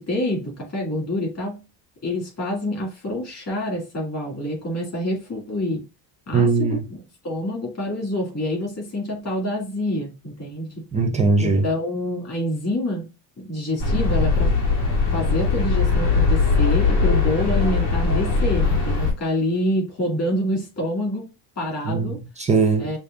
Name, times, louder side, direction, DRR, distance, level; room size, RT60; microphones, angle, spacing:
voice 1, 0.0-1.6 2.0-5.8 6.3-6.8 7.2-10.8 11.4-13.1 13.4-14.5 15.1-21.3 21.6-22.2 22.8-23.0, left 1 dB, 35° left, 2.5 m, -27 dB
voice 2, 6.3-6.8 10.9-11.7 21.9-22.9, right 4 dB, 15° right, 0.3 m, -20 dB
sound 1, 13.8-19.1, left 4 dB, 75° left, 2.1 m, -20 dB
6.5 x 2.5 x 2.6 m
cardioid pair, 155°, 46 cm